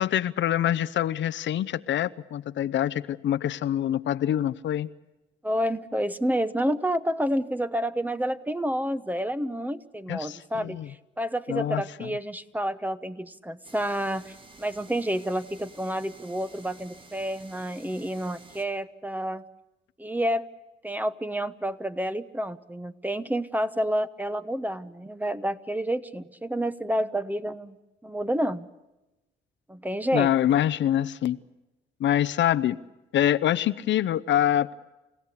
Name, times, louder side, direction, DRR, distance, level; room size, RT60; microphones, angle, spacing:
voice 1, 0.0-4.9 10.1-10.9 11.5-12.1 30.1-31.4 32.0-32.8 33.1-34.7, left 11 dB, 65° left, 12 dB, 0.7 m, -25 dB
voice 2, 5.4-19.4 20.0-20.4 20.8-27.7 28.0-28.7 29.7-30.3, equal, 10° right, 13 dB, 1.0 m, -29 dB
sound 1, 13.6-18.7, right 3 dB, 25° right, 1.9 m, -51 dB
29.0 x 16.5 x 8.3 m, 1.0 s
cardioid pair, 90°, 20 cm